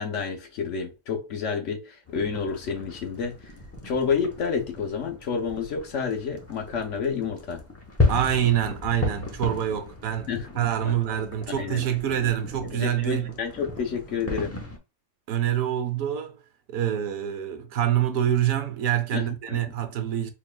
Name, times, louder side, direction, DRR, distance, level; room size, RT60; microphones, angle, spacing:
voice 1, 0.0-3.5 3.8-7.6 10.3-10.5 10.9-11.0 11.5-11.8 12.2-12.3 12.6-14.6 19.1-19.6, left 6 dB, 60° left, 1.1 m, -29 dB
sound 1, 2.1-14.8, left 3 dB, 15° left, 0.6 m, -34 dB
voice 2, 8.1-13.4 15.3-16.4 16.7-20.3, right 10 dB, 80° right, 1.1 m, -26 dB
4.6 x 3.1 x 2.2 m
omnidirectional pair, 1.5 m